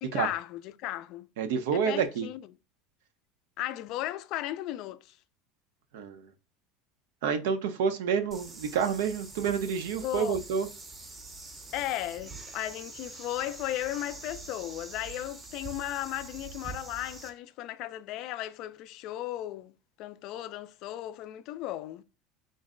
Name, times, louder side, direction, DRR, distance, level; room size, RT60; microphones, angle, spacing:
voice 1, 0.0-1.3 1.7-2.5 3.6-5.2 10.0-10.3 11.7-22.0, left 14 dB, 55° left, 0.3 m, -36 dB
voice 2, 1.4-2.3 5.9-6.2 7.2-10.7, right 7 dB, 85° right, 0.6 m, -28 dB
sound 1, 8.3-17.3, right 3 dB, 20° right, 0.6 m, -45 dB
3.8 x 2.1 x 3.6 m
supercardioid pair, 135°, 0 cm